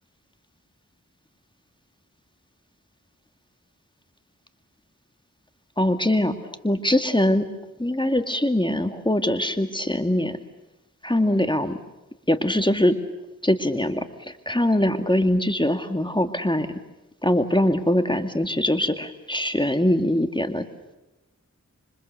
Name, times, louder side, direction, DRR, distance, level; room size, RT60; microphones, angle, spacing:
voice 1, 5.8-6.4 6.6-7.4 7.8-10.4 11.0-11.8 12.3-13.0 13.4-14.1 14.5-16.7 17.2-20.6, left 1 dB, 15° left, 8 dB, 2.2 m, -22 dB
28.0 x 25.5 x 6.9 m, 1.0 s
cardioid pair, 40°, 30 cm